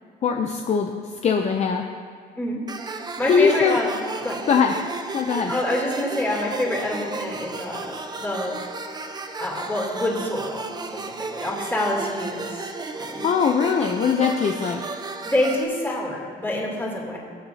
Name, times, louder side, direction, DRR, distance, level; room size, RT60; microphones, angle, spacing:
voice 1, 0.2-0.9 1.2-1.8 3.3-3.8 4.5-4.7 5.1-5.5 13.2-14.8, left 6 dB, 40° left, 3 dB, 0.7 m, -21 dB
sound 1, 2.7-15.6, right 3 dB, 25° right, 0.8 m, -34 dB
voice 2, 3.2-3.9 4.2-4.4 5.5-8.6 9.4-11.0 11.3-12.7 13.0-13.3 15.2-17.2, left 1 dB, 15° left, -4 dB, 3.1 m, -27 dB
21.0 x 8.0 x 2.9 m, 2.1 s
cardioid pair, 110°, 17 cm